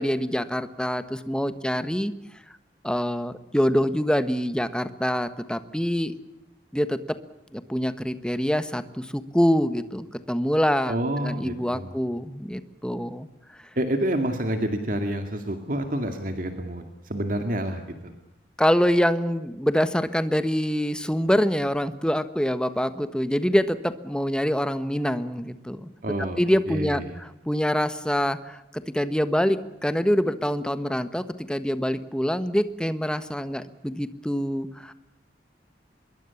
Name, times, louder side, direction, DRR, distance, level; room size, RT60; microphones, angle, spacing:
voice 1, 0.0-2.1 2.8-6.2 6.7-7.2 7.5-10.9 11.2-13.3 18.6-25.9 26.4-34.9, equal, 5° left, 11 dB, 1.3 m, -25 dB
voice 2, 10.9-12.0 13.8-18.1 26.0-26.4 26.7-27.2, right 1 dB, 50° right, 5 dB, 2.2 m, -28 dB
25.5 x 22.5 x 7.1 m, 0.93 s
head